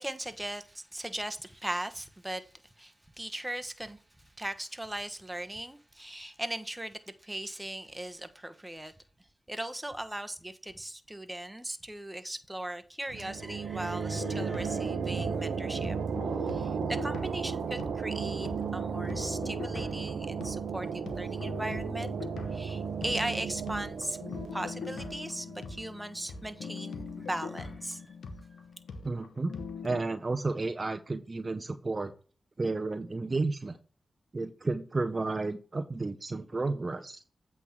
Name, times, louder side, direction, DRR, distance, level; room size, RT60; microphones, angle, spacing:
voice 1, 0.0-2.5 2.8-8.9 9.5-16.0 16.4-22.1 22.5-24.2 24.5-28.1, right 1 dB, 15° right, 1.1 m, -38 dB
sound 1, 13.1-26.5, right 6 dB, 85° right, 0.8 m, -35 dB
sound 2, 14.1-18.2 18.5-30.0, left 5 dB, 90° left, 1.0 m, -43 dB
voice 2, 29.0-29.5 29.8-32.1 32.6-33.8 34.3-37.2, right 3 dB, 40° right, 0.7 m, -32 dB
8.2 x 3.6 x 5.9 m
cardioid pair, 45°, 0 cm